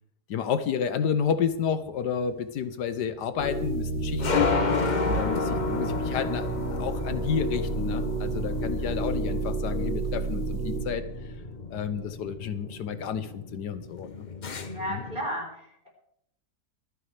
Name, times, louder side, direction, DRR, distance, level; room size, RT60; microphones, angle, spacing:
voice 1, 0.3-4.5 5.0-11.3 11.7-14.2 14.9-15.0, left 7 dB, 80° left, 11 dB, 1.4 m, -31 dB
sound 1, 1.3-15.3, left 4 dB, 40° left, 0.7 m, -33 dB
sound 2, 3.4-12.1, right 2 dB, 70° right, 4.9 m, -31 dB
voice 2, 8.5-9.0 14.6-15.9, equal, 30° right, -1 dB, 4.5 m, -35 dB
24.0 x 10.0 x 3.3 m, 0.77 s
omnidirectional pair, 1.8 m